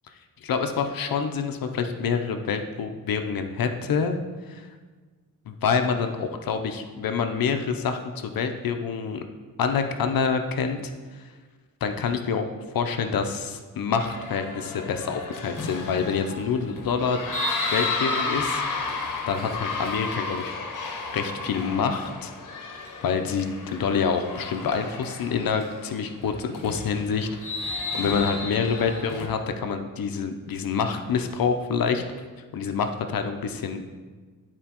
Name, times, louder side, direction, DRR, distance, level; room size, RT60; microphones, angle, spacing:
voice 1, 0.4-4.2 4.5-4.6 5.5-9.2 9.6-10.8 11.8-12.4 12.7-17.2 17.7-20.5 21.1-22.3 23.0-27.3 27.6-32.0 32.5-33.8, left 6 dB, 80° left, 6 dB, 0.6 m, -27 dB
sound 1, 13.9-29.3, left 3 dB, 60° left, 1.0 m, -33 dB
11.5 x 4.4 x 2.9 m, 1.4 s
wide cardioid pair, 170°, 35 cm